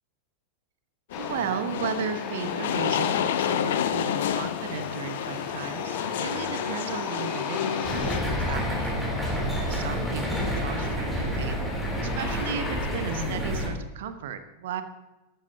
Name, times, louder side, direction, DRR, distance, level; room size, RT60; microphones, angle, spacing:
sound 1, 1.1-8.2, left 9 dB, 55° left, 0.7 m, -29 dB
Aircraft, 1.1-13.3, left 4 dB, 25° left, 2.4 m, -37 dB
voice 1, 1.2-9.0 9.7-11.8 12.1-14.8, right 7 dB, 55° right, 10 dB, 1.1 m, -35 dB
sound 2, 7.8-13.7, equal, 5° right, 3.6 m, -29 dB
13.5 x 12.5 x 2.8 m, 1.0 s
figure-of-eight pair, 90°, 0 cm